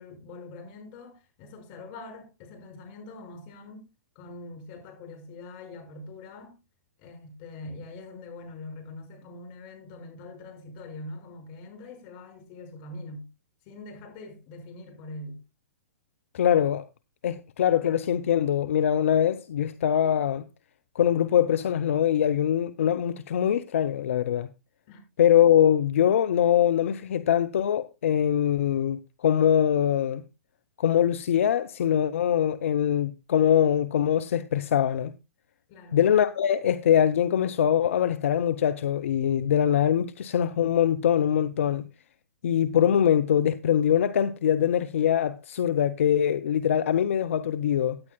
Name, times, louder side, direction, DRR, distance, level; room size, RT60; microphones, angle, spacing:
voice 1, 0.0-3.9 4.2-6.6 7.0-13.3 13.7-15.4 24.9-25.0 35.7-36.0, left 2 dB, 40° left, 5.5 m, -43 dB
voice 2, 16.3-16.9 17.2-20.4 21.0-24.5 25.2-30.2 30.8-35.1 35.9-41.8 42.4-48.0, left 9 dB, 60° left, 0.6 m, -23 dB
16.5 x 9.6 x 2.3 m
figure-of-eight pair, 110°, 8 cm